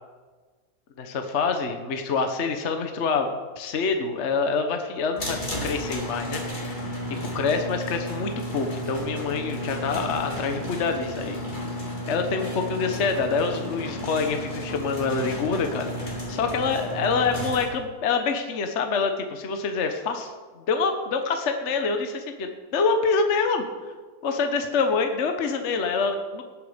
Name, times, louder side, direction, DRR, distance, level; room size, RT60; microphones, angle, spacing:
voice 1, 1.0-6.7 7.3-11.4 12.1-23.6 24.2-26.4, left 4 dB, 45° left, 6 dB, 1.2 m, -26 dB
sound 1, 5.2-17.7, equal, 25° left, 2.6 m, -33 dB
18.5 x 8.6 x 5.1 m, 1.4 s
omnidirectional pair, 2.0 m